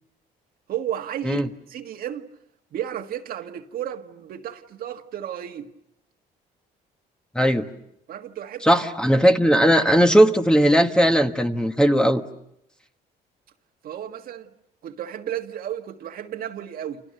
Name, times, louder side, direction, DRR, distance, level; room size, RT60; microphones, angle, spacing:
voice 1, 0.7-2.3 2.7-5.7 8.1-8.8 13.8-14.5 14.8-17.0, right 10 dB, 60° right, 1.7 m, -33 dB
voice 2, 8.6-12.2, equal, 5° left, 1.4 m, -18 dB
29.5 x 27.5 x 6.6 m
cardioid pair, 110°, 17 cm